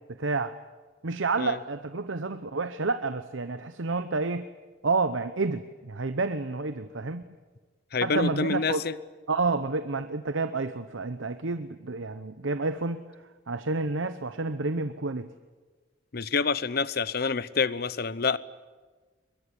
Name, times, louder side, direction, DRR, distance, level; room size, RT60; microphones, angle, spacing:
voice 1, 0.2-0.5 1.0-4.5 4.8-7.2 8.0-8.9 9.3-13.0 13.5-15.3, right 3 dB, 80° right, 10 dB, 0.9 m, -29 dB
voice 2, 7.9-8.9 16.1-18.4, left 4 dB, 55° left, 18 dB, 0.8 m, -27 dB
22.0 x 22.0 x 9.9 m, 1.4 s
head